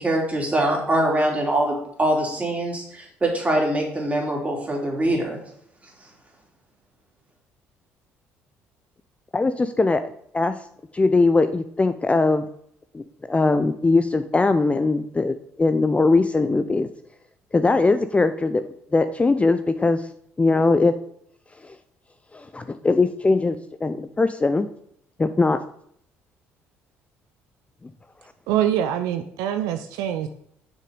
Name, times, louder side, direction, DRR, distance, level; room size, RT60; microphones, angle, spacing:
voice 1, 0.0-5.4, right 1 dB, 20° right, -1 dB, 3.0 m, -23 dB
voice 2, 9.3-10.0 10.3-10.6 10.9-12.5 12.9-16.9 17.5-18.6 18.9-20.0 20.4-20.9 21.6-21.8 22.3-24.7 25.2-25.6, left 3 dB, 20° left, 10 dB, 0.5 m, -20 dB
voice 3, 28.5-30.3, right 10 dB, 70° right, 7 dB, 0.5 m, -24 dB
6.6 x 6.1 x 5.1 m, 0.68 s
hypercardioid pair, 55°, 7 cm